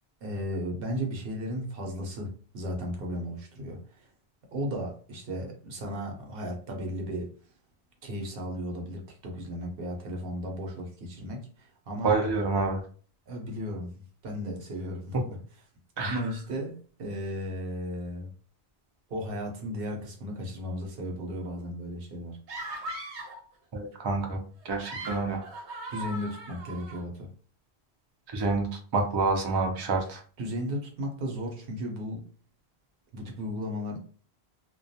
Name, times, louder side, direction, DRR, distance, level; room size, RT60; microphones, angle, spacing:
voice 1, 0.2-4.1 4.5-7.3 8.0-12.1 13.3-13.9 14.2-15.4 16.0-18.3 19.1-22.4 25.9-27.3 30.4-32.2 33.1-34.0, equal, 65° right, 0.8 m, -35 dB
voice 2, 12.0-12.8 16.0-16.2 23.7-25.5 28.3-30.2, right 3 dB, 45° right, 0.3 m, -28 dB
sound 1, 22.5-23.4 24.6-27.0, right 1 dB, 90° right, 1.0 m, -39 dB
2.2 x 2.2 x 2.6 m
omnidirectional pair, 1.1 m